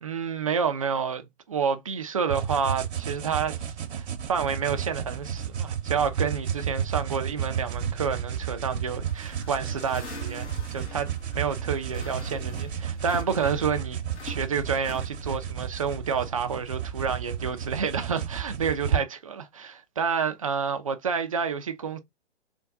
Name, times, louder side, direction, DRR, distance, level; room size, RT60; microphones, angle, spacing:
voice 1, 0.0-3.6 3.9-22.0, right 6 dB, 30° right, 0.4 m, -29 dB
sound 1, 2.3-19.0, right 8 dB, 65° right, 0.8 m, -32 dB
sound 2, 9.1-13.8 14.1-15.6, left 4 dB, 70° left, 1.6 m, -45 dB
Bass guitar, 12.0-18.2, right 3 dB, 10° left, 0.7 m, -43 dB
3.4 x 2.2 x 3.6 m
hypercardioid pair, 145°, 36 cm